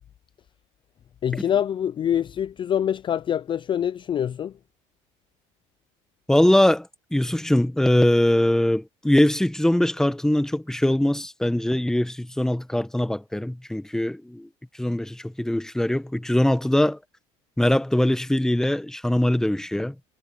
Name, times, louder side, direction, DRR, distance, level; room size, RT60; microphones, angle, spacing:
voice 1, 1.2-4.6, left 9 dB, 30° left, 0.4 m, -25 dB
voice 2, 6.3-14.5 14.8-17.0 17.6-19.9, left 1 dB, 5° left, 1.2 m, -22 dB
cardioid pair, 115°, 16 cm